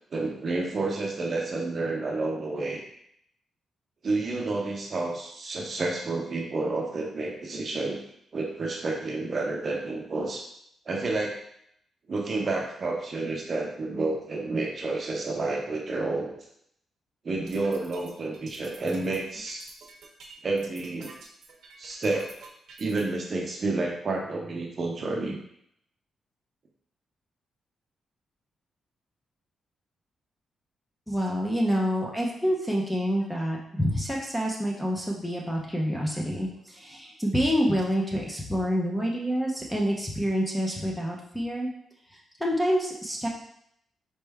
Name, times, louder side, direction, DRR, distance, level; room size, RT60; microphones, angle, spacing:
voice 1, 0.1-2.8 4.0-8.0 8.3-10.4 10.9-11.4 12.1-16.3 17.2-19.7 20.4-21.1 21.8-22.3 22.8-25.4, right 3 dB, 35° right, 0 dB, 0.6 m, -30 dB
sound 1, 17.3-23.0, right 3 dB, 65° right, 0.8 m, -49 dB
voice 2, 31.1-41.7 42.1-43.3, equal, 5° left, -2 dB, 0.7 m, -27 dB
4.3 x 3.3 x 3.4 m, 0.71 s
wide cardioid pair, 170°, 0 cm